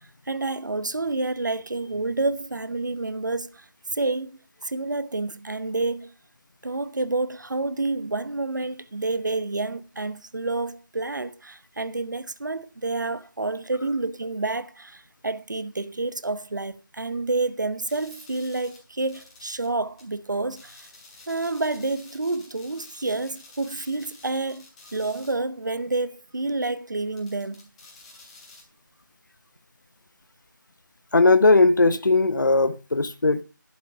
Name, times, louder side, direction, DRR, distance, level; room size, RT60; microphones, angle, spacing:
voice 1, 0.3-6.1 6.6-20.9 21.3-24.6 24.9-27.7, right 2 dB, 60° right, 1.0 m, -29 dB
sound 1, 17.9-19.7 20.0-20.1 20.5-25.4 25.7-25.8 27.2-28.6, left 3 dB, 20° left, 3.1 m, -50 dB
voice 2, 31.1-33.4, left 3 dB, 65° left, 0.9 m, -18 dB
11.0 x 8.1 x 5.6 m
figure-of-eight pair, 165°, 11 cm